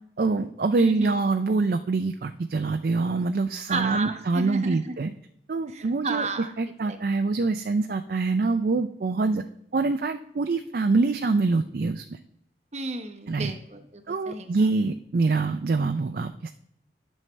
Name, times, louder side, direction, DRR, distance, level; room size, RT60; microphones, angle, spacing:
voice 1, 0.2-5.1 5.5-6.3 6.6-9.4 9.7-12.2 13.3-13.5 14.1-16.5, right 3 dB, 55° right, 7 dB, 0.4 m, -25 dB
voice 2, 0.8-1.1 3.7-4.9 5.7-6.5 6.8-7.0 12.7-14.7, right 3 dB, 40° right, 6 dB, 0.9 m, -32 dB
10.5 x 6.5 x 3.2 m, 0.76 s
head